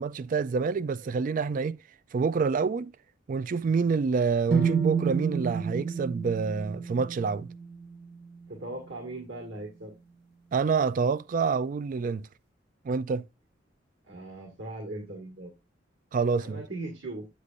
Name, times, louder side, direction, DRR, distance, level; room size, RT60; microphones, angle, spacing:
voice 1, 0.0-1.8 2.1-2.9 3.3-7.5 10.5-12.3 12.8-13.2 16.1-16.6, right 5 dB, 45° right, 0.3 m, -27 dB
sound 1, 4.5-8.5, right 6 dB, 60° right, 1.5 m, -30 dB
voice 2, 8.5-9.9 14.0-15.5 16.4-17.3, right 2 dB, 90° right, 1.8 m, -39 dB
8.3 x 8.2 x 2.5 m
head